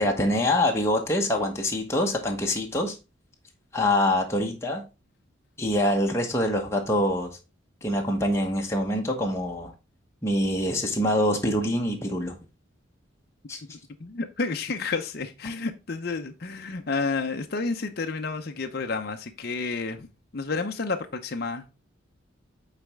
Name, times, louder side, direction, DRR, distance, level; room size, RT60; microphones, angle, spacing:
voice 1, 0.0-3.0 3.7-4.8 5.6-7.3 7.8-9.7 10.2-12.3 13.5-13.6, left 1 dB, 15° left, 1.0 m, -25 dB
voice 2, 14.0-20.1 20.3-21.7, left 4 dB, 50° left, 0.6 m, -30 dB
8.6 x 4.2 x 3.5 m
head